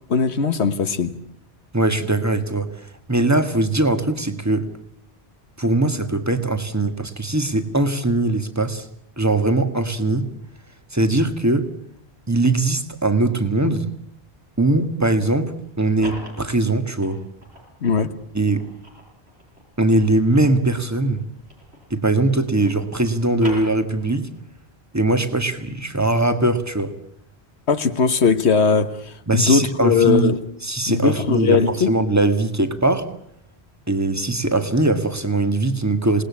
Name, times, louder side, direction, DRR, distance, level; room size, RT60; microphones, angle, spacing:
voice 1, 0.1-1.2 17.8-18.1 27.7-30.4 30.9-31.9, left 5 dB, 85° left, 1.5 m, -19 dB
voice 2, 1.7-4.7 5.6-8.9 9.2-10.3 10.9-11.7 12.3-13.9 14.6-17.2 18.3-18.7 19.8-21.3 21.9-24.3 24.9-27.0 29.3-30.3 30.6-33.1 33.9-36.2, right 2 dB, 15° right, 1.8 m, -21 dB
sound 1, 15.6-17.7 18.3-22.0 22.3-24.3, equal, 80° right, 8.0 m, -42 dB
27.5 x 19.5 x 8.5 m
omnidirectional pair, 1.1 m